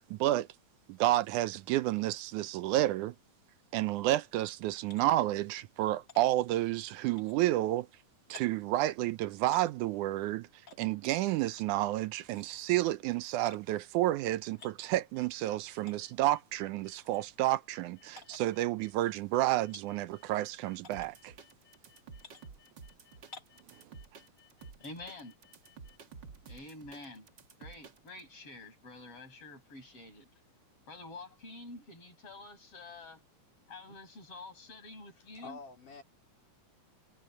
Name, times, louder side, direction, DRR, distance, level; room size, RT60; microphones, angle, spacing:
voice 1, 0.1-0.5 0.9-3.2 3.7-7.9 8.3-10.5 10.8-21.3, right 15 dB, 80° right, 2.1 m, -30 dB
sound 1, 4.8-5.1 6.1-6.2 7.1-7.4 8.3-8.5 9.4-9.7 10.7-10.8 11.5-11.7 12.2-12.5 13.5-13.6 14.5-14.8 15.9-16.0 17.0-17.2 18.2-18.4 19.7-19.9 20.8-21.1 22.2-22.4 23.3-23.6, left 4 dB, 25° left, 3.9 m, -52 dB
sound 2, 14.6-26.0, left 11 dB, 5° left, 2.7 m, -66 dB
sound 3, 20.9-28.2, right 5 dB, 45° right, 1.9 m, -51 dB
voice 2, 24.8-25.3 26.4-27.3 27.6-30.3 30.9-33.2 33.7-35.6, left 2 dB, 45° left, 8.3 m, -48 dB
voice 3, 35.2-36.0, left 4 dB, 80° left, 6.2 m, -48 dB
omnidirectional pair, 3.6 m